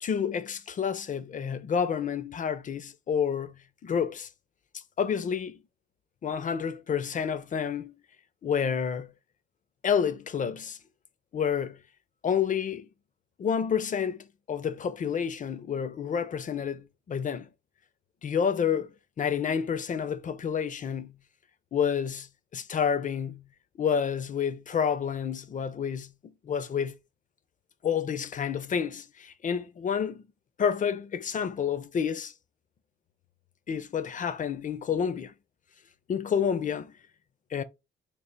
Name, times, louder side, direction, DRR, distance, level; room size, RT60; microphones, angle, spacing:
voice 1, 0.0-4.3 4.7-5.6 6.2-7.9 8.4-9.1 9.8-10.8 11.3-11.8 12.2-12.9 13.4-17.5 18.2-21.2 21.7-22.3 22.5-23.5 23.8-27.0 27.8-30.2 30.6-32.3 33.7-35.3 36.1-36.9 37.5-37.6, left 7 dB, 40° left, 0.5 m, -29 dB
3.4 x 2.4 x 3.9 m
cardioid pair, 90°, 20 cm